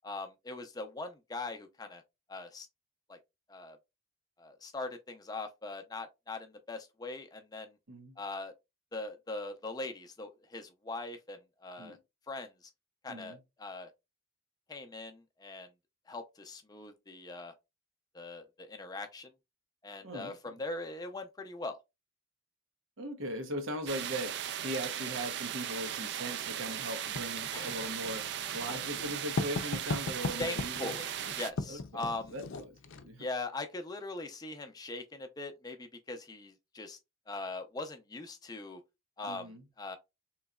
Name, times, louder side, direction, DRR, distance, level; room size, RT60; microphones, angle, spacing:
voice 1, 0.0-2.0 2.3-2.7 3.1-3.2 3.5-3.8 4.4-7.8 8.2-8.5 8.9-12.0 12.3-12.7 13.0-13.9 14.7-15.7 16.1-17.5 18.1-19.3 19.8-21.8 27.5-27.7 30.4-32.3 33.2-37.0 37.3-38.8 39.2-40.0, left 2 dB, 20° left, 0.4 m, -41 dB
voice 2, 13.1-13.4 20.0-20.3 23.0-30.9 31.7-33.3 39.2-39.6, right 1 dB, 85° right, 0.9 m, -39 dB
sound 1, 23.9-31.5, right 10 dB, 60° right, 0.3 m, -37 dB
Writing, 27.2-33.1, left 3 dB, 85° left, 0.5 m, -38 dB
3.8 x 3.1 x 2.2 m
head